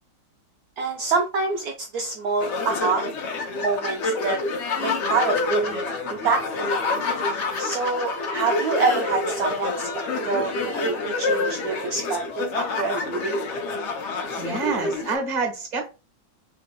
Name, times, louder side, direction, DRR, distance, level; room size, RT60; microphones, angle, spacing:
voice 1, 0.8-4.4 4.8-5.8 6.1-6.7 7.6-13.4, right 4 dB, 80° right, 2 dB, 0.8 m, -26 dB
sound 1, 2.4-15.1, left 3 dB, 75° left, 0.6 m, -27 dB
voice 2, 14.4-15.9, right 4 dB, 30° right, 2 dB, 0.9 m, -27 dB
3.5 x 3.1 x 2.2 m, 0.30 s
omnidirectional pair, 2.1 m